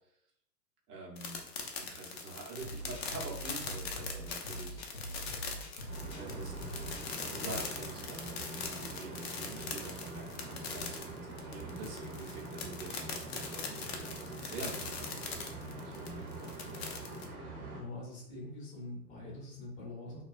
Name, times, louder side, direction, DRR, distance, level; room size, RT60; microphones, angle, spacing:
voice 1, 0.9-1.4 1.8-4.8 6.1-6.5 7.1-16.9, right 3 dB, 65° right, -2 dB, 1.1 m, -46 dB
sound 1, 1.2-17.2, left 5 dB, 45° left, 0.4 m, -41 dB
sound 2, 2.6-7.9, right 1 dB, 85° left, 0.7 m, -44 dB
sound 3, 5.9-17.8, right 2 dB, 40° right, 1.1 m, -44 dB
voice 2, 17.7-20.2, left 2 dB, 15° left, -3 dB, 0.8 m, -44 dB
2.3 x 2.2 x 2.4 m, 0.77 s
hypercardioid pair, 120°, 49 cm